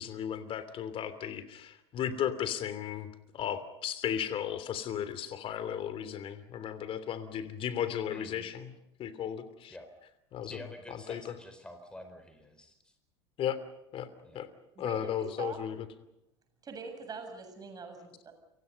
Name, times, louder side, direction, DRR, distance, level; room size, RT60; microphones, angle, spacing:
voice 1, 0.0-8.7 9.0-9.7 10.3-10.6 10.9-11.3 13.4-13.6 13.9-14.1 14.3-14.5 14.8-15.8, left 9 dB, 40° left, 13 dB, 3.0 m, -35 dB
voice 2, 8.1-8.5 9.7-9.9 10.4-12.9 14.2-14.4, left 1 dB, 5° left, 7 dB, 4.8 m, -48 dB
voice 3, 14.8-15.6 16.6-18.3, right 4 dB, 30° right, 6 dB, 7.8 m, -43 dB
30.0 x 25.0 x 5.4 m, 0.86 s
figure-of-eight pair, 75°, 14 cm